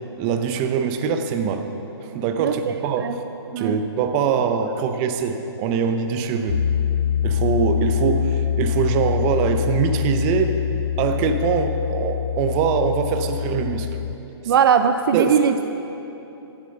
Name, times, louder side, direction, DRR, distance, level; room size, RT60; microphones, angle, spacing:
voice 1, 0.2-1.7 2.0-3.1 3.6-6.6 7.2-10.5 11.0-13.9 15.1-15.3, right 6 dB, 25° right, 7 dB, 0.8 m, -23 dB
voice 2, 2.4-2.7 3.0-3.2 3.5-3.8 14.5-15.6, right 7 dB, 55° right, 8 dB, 0.5 m, -19 dB
Piano, 6.5-14.2, left 10 dB, 70° left, 0.4 m, -24 dB
12.0 x 8.9 x 6.6 m, 3.0 s
hypercardioid pair, 145°, 14 cm